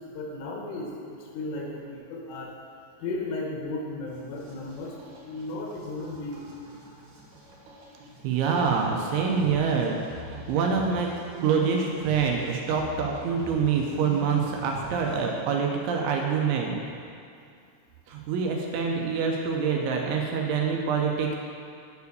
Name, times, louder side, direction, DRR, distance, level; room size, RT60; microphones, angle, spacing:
voice 1, 0.1-0.9 1.3-2.5 3.0-4.9 5.2-6.5, left 2 dB, 90° left, -1 dB, 3.8 m, -34 dB
sound 1, 4.1-15.3, right 2 dB, 60° right, 3.1 m, -44 dB
voice 2, 8.2-11.1 11.4-16.7 18.1-21.4, right 6 dB, 85° right, 0 dB, 2.9 m, -26 dB
9.4 x 4.7 x 6.8 m, 2.4 s
omnidirectional pair, 5.7 m